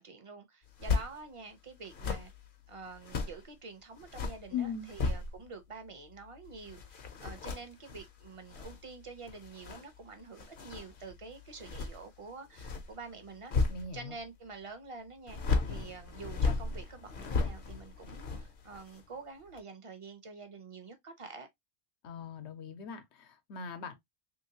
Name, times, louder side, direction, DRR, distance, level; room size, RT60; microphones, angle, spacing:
voice 1, 0.0-2.3 2.7-13.5 13.9-15.4 15.6-21.5, right 4 dB, 35° right, 0.6 m, -47 dB
sound 1, 0.7-1.1 1.8-3.5 3.9-5.6 5.9-14.3 15.3-19.1 19.5-19.6, left 4 dB, 55° left, 0.8 m, -36 dB
voice 2, 4.5-4.9 13.7-14.2 22.0-23.9, left 6 dB, 85° left, 1.0 m, -39 dB
3.1 x 2.8 x 2.7 m
omnidirectional pair, 1.1 m